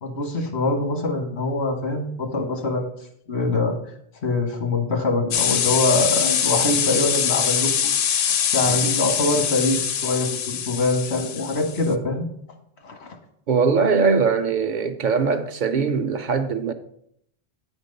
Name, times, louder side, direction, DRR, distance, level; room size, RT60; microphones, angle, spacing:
voice 1, 0.0-2.9 3.3-3.7 4.2-7.9 8.5-12.3 12.8-13.2, left 2 dB, 90° left, 1.7 m, -24 dB
sound 1, 5.3-11.9, left 8 dB, 65° left, 0.7 m, -23 dB
voice 2, 13.5-16.7, right 5 dB, 55° right, 0.6 m, -21 dB
8.9 x 4.4 x 5.3 m
omnidirectional pair, 1.1 m